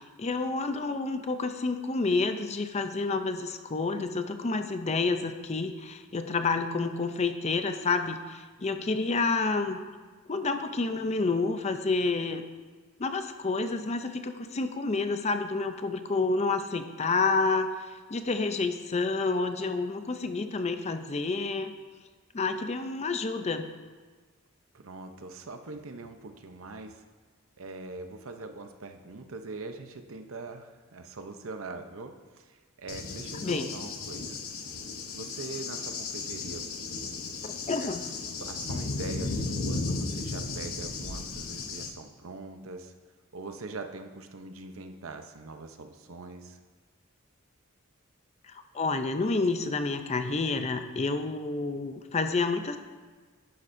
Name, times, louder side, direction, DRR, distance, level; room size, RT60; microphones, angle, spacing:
voice 1, 0.2-9.8 10.3-12.4 13.0-17.7 18.1-21.7 22.3-23.7 33.4-33.7 37.4-38.0 48.5-52.8, left 3 dB, 30° left, 8 dB, 0.5 m, -29 dB
voice 2, 24.7-27.0 27.6-34.4 35.1-36.7 37.8-42.9 43.3-46.6, right 3 dB, 70° right, 6 dB, 0.7 m, -42 dB
Cricket / Thunder, 32.9-41.9, left 3 dB, 85° left, 0.9 m, -35 dB
11.0 x 9.9 x 2.6 m, 1.4 s
head